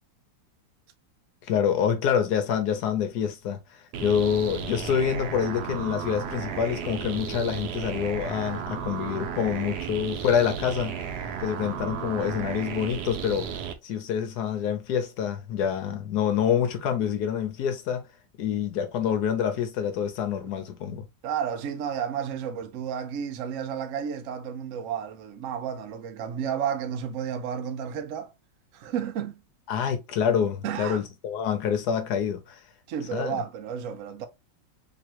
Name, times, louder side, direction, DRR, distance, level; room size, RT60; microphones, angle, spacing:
voice 1, 1.5-11.0 11.4-18.0 18.4-21.0 29.7-32.6 33.1-33.4, left 8 dB, 65° left, 1.1 m, -27 dB
sound 1, 3.9-13.7, right 7 dB, 70° right, 1.0 m, -34 dB
voice 2, 21.2-28.3 28.7-29.4 30.6-31.0 32.9-34.3, right 8 dB, 85° right, 0.7 m, -32 dB
3.6 x 2.9 x 2.9 m
omnidirectional pair, 2.1 m